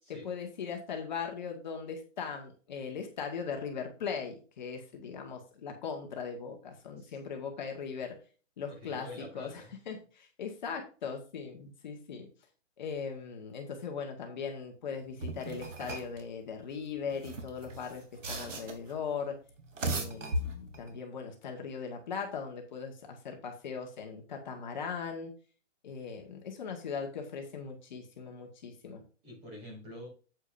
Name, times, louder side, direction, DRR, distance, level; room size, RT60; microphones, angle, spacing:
voice 1, 0.1-8.1 8.6-9.1 9.3-12.3 12.8-19.4 19.9-25.3 25.8-29.0, left 6 dB, 40° left, 2 dB, 1.6 m, -39 dB
voice 2, 8.7-9.8 29.2-30.1, left 1 dB, 20° right, 0 dB, 2.9 m, -46 dB
sound 1, 15.2-16.2 17.1-18.9 19.6-20.9, right 1 dB, 80° right, 3.1 m, -37 dB
8.8 x 8.4 x 2.6 m, 0.37 s
hypercardioid pair, 175°, 37 cm